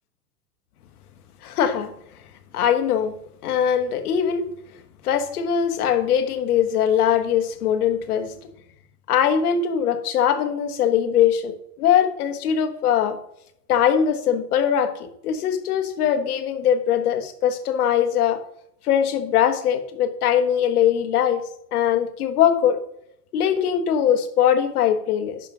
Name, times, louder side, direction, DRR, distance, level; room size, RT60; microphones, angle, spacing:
voice 1, 1.4-1.9 2.5-3.1 3.4-4.4 5.0-8.3 9.1-13.2 13.7-14.9 15.2-18.4 18.8-21.4 21.7-22.8 23.3-25.4, left 9 dB, 70° left, 8 dB, 1.4 m, -21 dB
10.5 x 6.1 x 3.7 m, 0.74 s
supercardioid pair, 160°, 47 cm